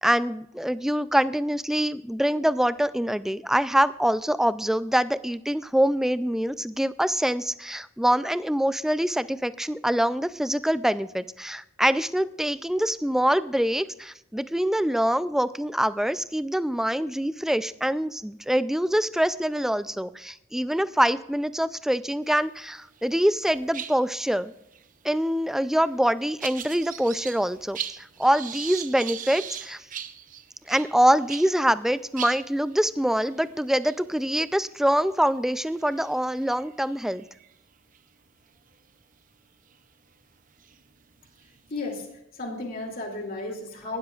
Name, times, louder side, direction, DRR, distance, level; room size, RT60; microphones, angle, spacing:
voice 1, 0.0-24.5 25.0-29.8 30.7-37.2, equal, ahead, 14 dB, 0.3 m, -25 dB
sound 1, 22.6-23.1 23.4-31.6 31.9-32.0 32.2-38.0 38.6-38.8 39.7-39.8 40.4-42.1, right 9 dB, 45° right, 0.6 m, -40 dB
voice 2, 41.7-44.0, left 2 dB, 50° left, 1 dB, 2.8 m, -34 dB
18.5 x 12.5 x 2.4 m, 0.83 s
head